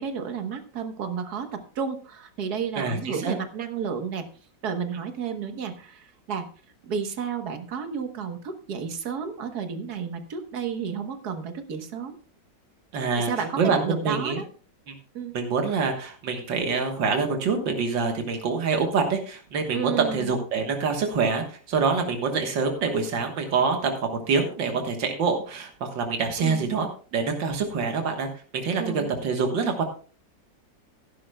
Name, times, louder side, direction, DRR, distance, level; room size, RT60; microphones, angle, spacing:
voice 1, 0.0-4.3 4.6-6.5 6.8-12.1 13.2-14.5 15.1-15.4 19.7-20.4 26.4-26.7 28.8-29.1, right 6 dB, 60° right, 7 dB, 1.7 m, -32 dB
voice 2, 2.8-3.4 12.9-13.3 13.6-14.4 15.3-28.3 28.6-29.8, right 4 dB, 90° right, 4 dB, 2.1 m, -26 dB
16.0 x 11.0 x 2.3 m, 0.40 s
omnidirectional pair, 1.9 m